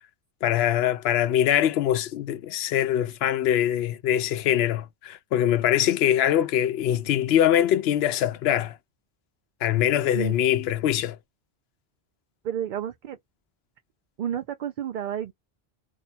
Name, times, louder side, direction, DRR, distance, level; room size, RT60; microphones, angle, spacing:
voice 1, 0.4-8.7 9.6-11.2, left 11 dB, 75° left, 0.8 m, -23 dB
voice 2, 12.4-13.2 14.2-15.3, right 10 dB, 60° right, 0.6 m, -30 dB
2.8 x 2.1 x 4.0 m
omnidirectional pair, 1.1 m